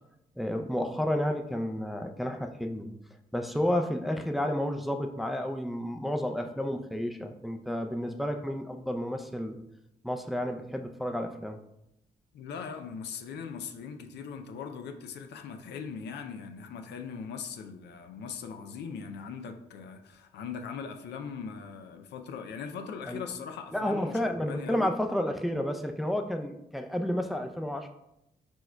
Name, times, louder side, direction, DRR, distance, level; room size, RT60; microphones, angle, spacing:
voice 1, 0.4-2.9 3.3-9.6 10.0-11.6 23.1-23.3 23.7-27.9, equal, ahead, 5 dB, 0.4 m, -31 dB
voice 2, 12.3-24.9, left 6 dB, 85° left, 6 dB, 0.4 m, -40 dB
4.4 x 4.3 x 2.2 m, 0.85 s
supercardioid pair, 55°, 17 cm